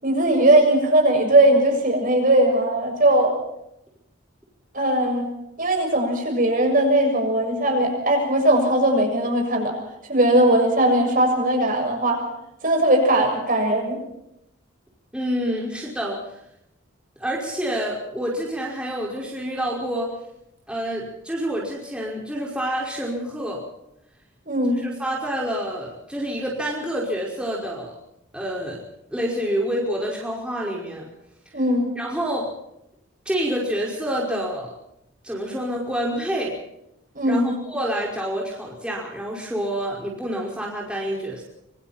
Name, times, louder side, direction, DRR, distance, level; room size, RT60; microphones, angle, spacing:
voice 1, 0.0-3.4 4.7-5.3 5.6-9.8 10.1-12.2 12.6-14.0 24.5-24.8 31.5-31.9 37.2-37.6, right 1 dB, 45° right, 2 dB, 6.9 m, -19 dB
voice 2, 15.1-16.4 17.2-20.1 20.7-23.6 24.8-27.9 28.3-28.8 29.1-31.0 32.0-32.5 33.3-34.7 35.2-36.6 37.3-41.4, equal, 5° right, -3 dB, 5.3 m, -27 dB
26.0 x 25.0 x 4.5 m, 0.81 s
head